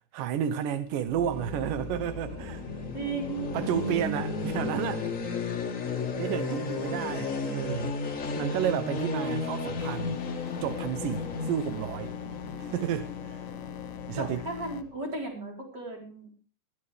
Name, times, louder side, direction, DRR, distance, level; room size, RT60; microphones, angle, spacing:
voice 1, 0.1-2.7 3.5-5.1 6.2-8.0 8.4-10.2 10.6-12.1 12.6-13.4 14.1-14.4, right 9 dB, 85° right, 2.5 m, -31 dB
sound 1, 1.0-14.9, left 3 dB, 40° left, 1.2 m, -34 dB
voice 2, 2.9-3.6 6.4-6.6 14.2-16.3, right 3 dB, 30° right, 4.5 m, -35 dB
sound 2, 9.8-14.8, left 9 dB, 75° left, 2.5 m, -41 dB
20.0 x 13.5 x 3.4 m
omnidirectional pair, 3.7 m